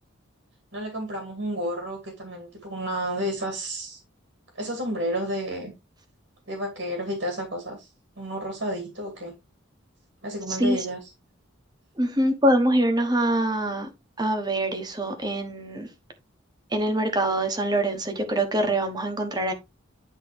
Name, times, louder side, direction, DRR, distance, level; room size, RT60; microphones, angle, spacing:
voice 1, 0.7-4.0 4.5-5.7 6.5-7.9 8.2-9.3 10.2-11.0, equal, 75° right, 2.3 m, -31 dB
voice 2, 10.5-10.8 12.0-13.9 14.2-15.9 16.7-19.5, right 1 dB, 20° right, 1.2 m, -24 dB
9.8 x 3.8 x 3.3 m
head